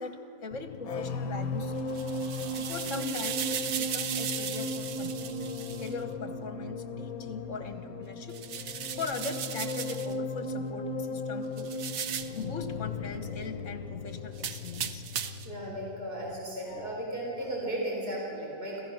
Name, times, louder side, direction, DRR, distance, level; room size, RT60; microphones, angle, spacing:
voice 1, 0.0-1.7 2.6-5.2 5.8-8.4 9.0-11.7 12.3-15.0, left 4 dB, 60° left, 7 dB, 1.7 m, -39 dB
sound 1, 0.5-17.2 17.4-17.7, left 2 dB, 75° left, 1.3 m, -37 dB
sound 2, 1.8-5.9 8.3-10.1 11.6-12.4 14.3-15.5, right 8 dB, 70° right, 1.3 m, -36 dB
voice 2, 15.4-18.8, right 1 dB, 45° right, -4 dB, 4.4 m, -35 dB
27.0 x 15.5 x 6.5 m, 2.8 s
omnidirectional pair, 1.5 m